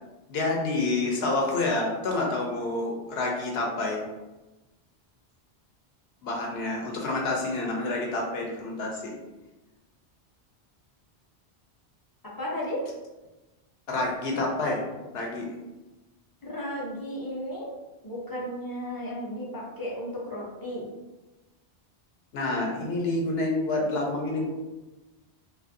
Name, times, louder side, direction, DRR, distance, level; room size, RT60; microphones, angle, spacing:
voice 1, 0.3-4.0 6.2-9.1 13.9-14.8 15.1-15.5 22.3-24.5, left 2 dB, 70° left, -1 dB, 0.8 m, -28 dB
voice 2, 12.4-12.8 16.4-17.7 18.0-20.9, equal, 35° left, -4 dB, 0.3 m, -34 dB
2.5 x 2.3 x 2.5 m, 1.1 s
omnidirectional pair, 1.1 m